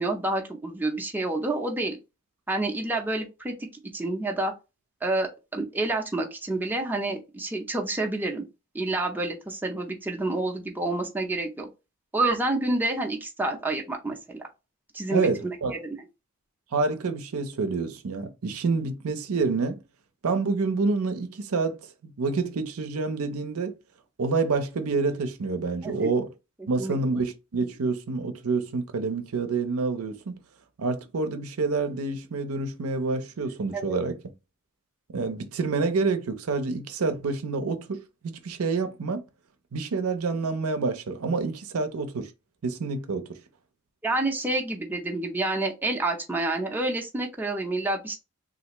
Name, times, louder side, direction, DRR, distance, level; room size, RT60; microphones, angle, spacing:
voice 1, 0.0-2.0 2.5-3.5 3.9-4.5 5.0-8.4 8.7-11.7 12.1-14.4 14.9-16.0 25.8-26.1 26.8-27.0 33.7-34.0 44.0-48.2, right 2 dB, 10° right, 0.5 m, -28 dB
voice 2, 15.1-15.7 16.7-19.8 20.2-23.8 24.2-26.3 26.7-30.4 30.8-34.3 35.1-39.2 39.7-42.3 42.6-43.4, right 4 dB, 75° right, 0.6 m, -28 dB
3.3 x 2.5 x 2.9 m
head